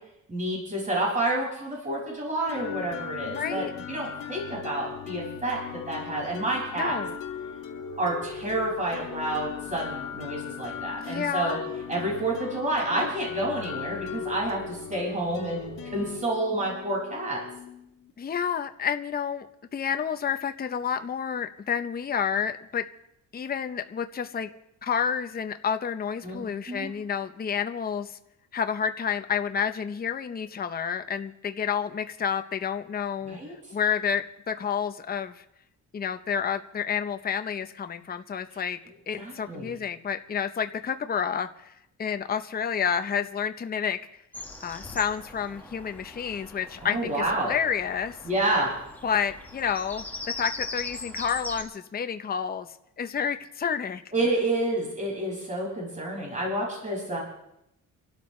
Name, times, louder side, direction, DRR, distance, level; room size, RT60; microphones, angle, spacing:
voice 1, 0.3-7.0 8.0-11.6 11.9-17.4 26.2-26.9 33.2-33.5 39.2-39.7 46.8-47.5 48.2-48.7 54.1-57.2, right 1 dB, 20° right, -4 dB, 6.0 m, -29 dB
sound 1, 2.5-18.1, left 8 dB, 70° left, 4.4 m, -38 dB
voice 2, 3.2-3.7 6.8-7.2 11.0-11.6 18.2-19.5 19.7-22.8 23.3-24.5 24.8-28.2 28.5-33.4 33.7-35.4 35.9-38.8 39.1-44.0 44.6-48.2 49.0-52.7 53.0-54.0, left 7 dB, 25° left, 8 dB, 0.7 m, -29 dB
Bird vocalization bird call bird song, 44.3-51.6, left 2 dB, 5° left, 1.7 m, -40 dB
28.0 x 12.5 x 3.2 m, 0.81 s
cardioid pair, 125°, 34 cm